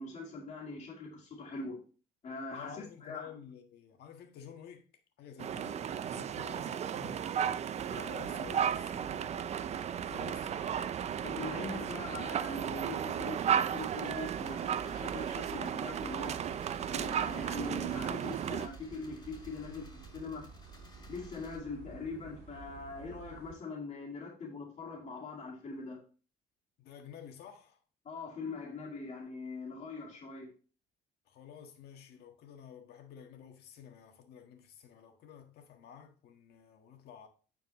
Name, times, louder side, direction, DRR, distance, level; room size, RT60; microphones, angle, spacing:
voice 1, 0.0-1.8 2.2-3.3 11.2-16.4 16.9-20.5 21.1-26.0 28.0-30.5, left 3 dB, 40° left, 2.3 m, -42 dB
voice 2, 2.5-4.9 5.2-7.3 7.9-9.3 9.8-10.5 26.8-27.8 31.3-37.3, left 8 dB, 70° left, 1.6 m, -51 dB
sound 1, 5.4-18.7, right 9 dB, 40° right, 0.5 m, -34 dB
sound 2, 7.8-23.6, right 5 dB, 85° right, 1.6 m, -51 dB
sound 3, 13.7-21.6, left 2 dB, 20° left, 3.1 m, -57 dB
9.5 x 4.6 x 3.1 m
cardioid pair, 110°, 17 cm